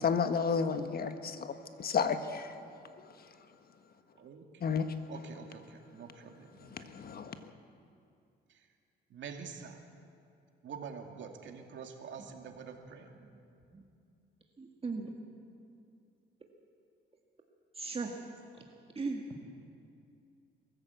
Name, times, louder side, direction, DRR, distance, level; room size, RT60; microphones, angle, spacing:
voice 1, 0.0-1.5 1.8-2.6 4.6-4.9 6.7-7.5, left 6 dB, 50° left, 9 dB, 1.4 m, -32 dB
voice 2, 5.1-5.6 5.9-6.5 9.1-9.8 10.6-13.1, right 6 dB, 70° right, 3 dB, 2.5 m, -46 dB
voice 3, 12.2-12.6 12.9-13.0 13.7-13.8 14.6-15.1 17.8-18.1 18.5-18.6 19.0-19.2, right 4 dB, 30° right, 1 dB, 1.9 m, -38 dB
22.5 x 14.5 x 8.2 m, 2.5 s
cardioid pair, 90°, 20 cm